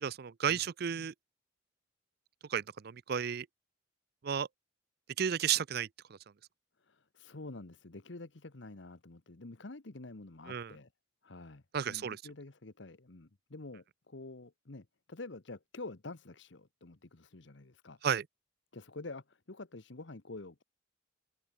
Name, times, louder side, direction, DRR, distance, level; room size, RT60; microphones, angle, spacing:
voice 1, 0.0-1.1 2.5-3.5 4.2-4.5 5.2-5.9 10.5-10.7 11.7-12.2 18.0-18.2, right 8 dB, 50° right, 0.4 m, -32 dB
voice 2, 6.8-10.9 11.2-18.0 18.7-20.6, left 2 dB, 65° left, 1.1 m, -48 dB
head